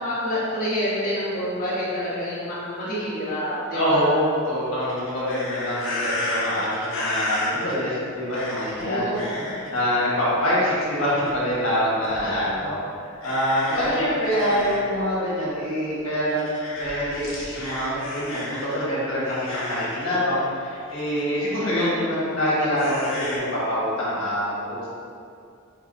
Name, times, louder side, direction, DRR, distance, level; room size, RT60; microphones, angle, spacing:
voice 1, 0.0-4.1 8.8-9.6 10.5-10.6 12.2-12.7 13.7-14.6 22.6-23.1, equal, 45° left, -10 dB, 1.0 m, -28 dB
voice 2, 3.7-12.8 13.0-24.9, equal, 85° left, -8 dB, 1.2 m, -25 dB
sound 1, 4.8-7.7 8.3-8.8 9.1-9.8 11.0-11.5 12.0-12.2 13.2-14.9 15.4-15.5 16.3-18.8 19.2-20.2 20.9-21.2 22.8-23.4, left 2 dB, 65° left, 0.7 m, -32 dB
4.5 x 2.0 x 3.9 m, 2.4 s
head